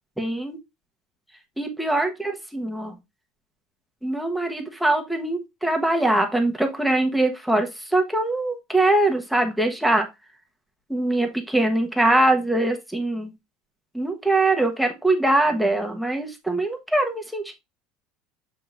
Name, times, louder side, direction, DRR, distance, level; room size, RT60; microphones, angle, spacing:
voice 1, 0.2-0.6 1.6-3.0 4.0-10.1 10.9-13.3 13.9-17.5, right 2 dB, ahead, 3 dB, 1.2 m, -22 dB
7.1 x 5.4 x 2.5 m, 0.21 s
cardioid pair, 140°, 0 cm